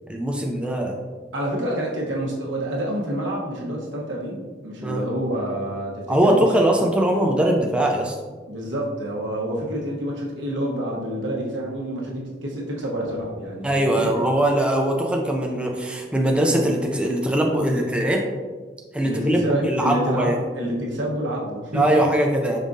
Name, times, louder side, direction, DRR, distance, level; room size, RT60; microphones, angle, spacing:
voice 1, 0.1-1.0 4.8-5.0 6.1-8.1 13.6-18.2 18.9-20.4 21.7-22.6, right 1 dB, 5° right, 1 dB, 0.3 m, -21 dB
voice 2, 1.3-6.4 8.5-14.1 19.0-22.0, right 1 dB, 80° right, -2 dB, 1.1 m, -28 dB
5.3 x 3.6 x 2.6 m, 1.4 s
head